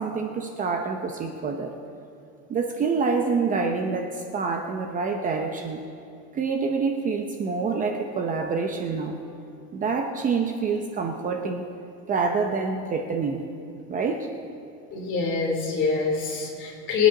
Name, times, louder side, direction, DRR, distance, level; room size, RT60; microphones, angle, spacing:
voice 1, 0.0-1.7 2.5-5.8 6.3-9.2 9.7-11.7 12.1-13.4 13.9-14.3, right 4 dB, 25° right, 3 dB, 0.7 m, -27 dB
voice 2, 14.9-17.1, left 5 dB, 40° left, -1 dB, 3.0 m, -24 dB
23.5 x 9.3 x 3.8 m, 2.6 s
cardioid pair, 170°, 31 cm